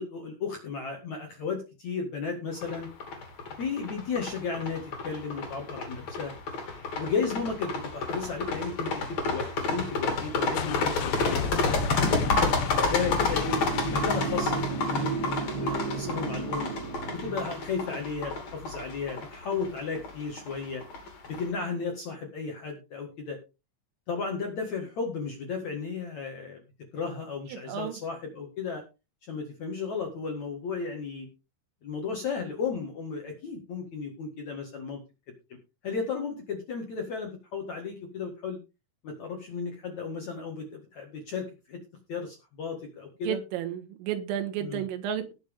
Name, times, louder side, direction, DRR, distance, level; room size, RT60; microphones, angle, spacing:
voice 1, 0.0-2.9 3.5-6.3 6.9-12.1 12.9-15.1 15.4-16.7 17.1-20.8 21.2-23.4 24.1-26.6 26.9-28.8 29.3-31.3 31.8-35.0 35.8-38.6 39.0-41.8 42.1-43.4 44.6-44.8, left 5 dB, 55° left, 2.0 m, -34 dB
sound 1, 2.6-21.4, left 3 dB, 40° left, 3.2 m, -30 dB
sound 2, 10.1-15.6, left 10 dB, 75° left, 3.1 m, -36 dB
sound 3, 12.8-17.7, right 4 dB, 65° right, 5.0 m, -34 dB
voice 2, 27.5-28.0 43.2-45.3, right 10 dB, 85° right, 4.1 m, -32 dB
18.5 x 7.2 x 3.6 m
omnidirectional pair, 5.8 m